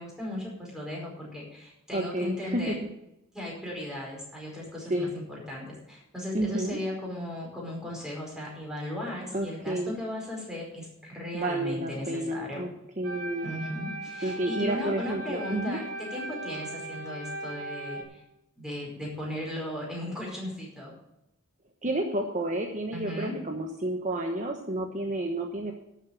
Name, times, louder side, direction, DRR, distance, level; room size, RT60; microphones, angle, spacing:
voice 1, 0.0-2.7 3.3-12.6 13.4-18.2 18.6-20.9 22.9-23.4, left 1 dB, 5° right, -3 dB, 4.9 m, -37 dB
voice 2, 1.9-2.7 4.9-5.1 6.3-6.8 9.3-10.0 11.3-12.7 13.0-13.5 14.2-15.8 21.8-25.7, right 1 dB, 35° right, 2 dB, 1.1 m, -30 dB
sound 1, 13.0-18.0, right 2 dB, 70° right, 2.3 m, -38 dB
12.0 x 7.4 x 7.0 m, 0.88 s
head